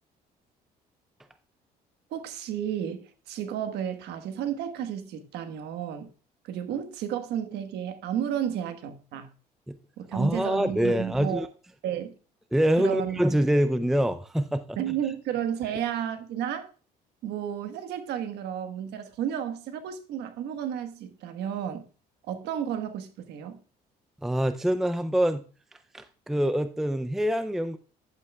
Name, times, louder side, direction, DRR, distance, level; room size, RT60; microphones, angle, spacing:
voice 1, 2.1-6.1 6.4-9.3 10.0-11.5 11.8-12.1 12.8-13.2 14.8-16.7 17.2-21.9 22.2-23.6, right 9 dB, 80° right, 1.2 m, -32 dB
voice 2, 10.1-11.5 12.5-14.8 24.2-25.4 25.9-27.8, equal, ahead, 0.4 m, -25 dB
11.0 x 8.3 x 2.3 m
cardioid pair, 110°, 17 cm